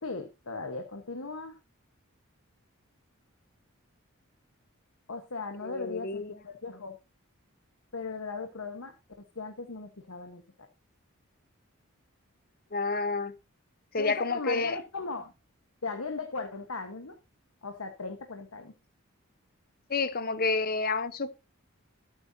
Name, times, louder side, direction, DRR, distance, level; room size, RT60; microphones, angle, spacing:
voice 1, 0.0-1.6 5.1-7.0 7.9-10.4 14.0-15.3 15.8-17.2 17.6-18.7, left 3 dB, 80° left, 1.3 m, -38 dB
voice 2, 5.6-6.3 12.7-13.3 13.9-14.8 19.9-21.3, left 4 dB, 45° left, 0.9 m, -29 dB
20.0 x 8.1 x 2.8 m
head